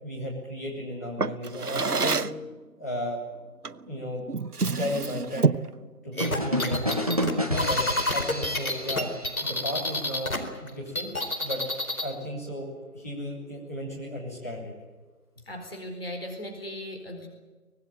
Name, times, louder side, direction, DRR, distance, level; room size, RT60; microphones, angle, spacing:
voice 1, 0.0-2.3 2.8-3.2 3.9-4.2 4.7-5.5 6.0-7.1 7.6-9.1 9.4-11.1 11.4-11.6 12.0-12.7 12.9-14.7, left 1 dB, 10° left, -7 dB, 3.4 m, -34 dB
Drawer open or close, 1.2-2.5 3.6-3.9 4.3-5.8, right 4 dB, 80° right, 1.0 m, -27 dB
sound 1, 6.2-10.4 10.7-12.1, left 1 dB, 65° left, 4.3 m, -28 dB
sound 2, 6.2-9.9, equal, 25° right, 1.6 m, -30 dB
voice 2, 15.5-17.3, left 1 dB, 40° left, 3 dB, 4.3 m, -37 dB
24.5 x 19.0 x 9.3 m, 1.3 s
figure-of-eight pair, 170°, 45 cm